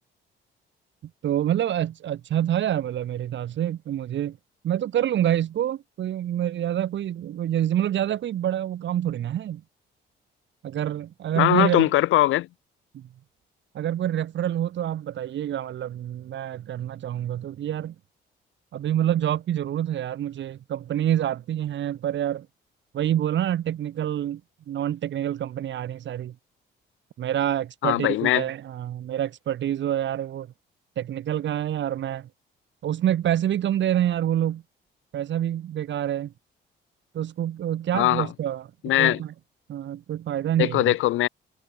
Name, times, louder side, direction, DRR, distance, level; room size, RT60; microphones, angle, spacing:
voice 1, 1.2-4.4 4.6-9.6 10.6-11.9 12.9-13.1 13.7-17.9 18.7-22.5 22.9-24.4 24.7-26.3 27.2-30.5 31.0-32.3 32.8-34.6 35.1-36.3 37.1-38.7 39.0-39.3 39.7-40.9, right 11 dB, 70° right, 2.4 m, -27 dB
voice 2, 11.4-12.5 27.8-28.4 37.9-38.3 38.8-39.2 40.6-41.3, left 16 dB, 90° left, 1.9 m, -21 dB
cardioid pair, 90°, 20 cm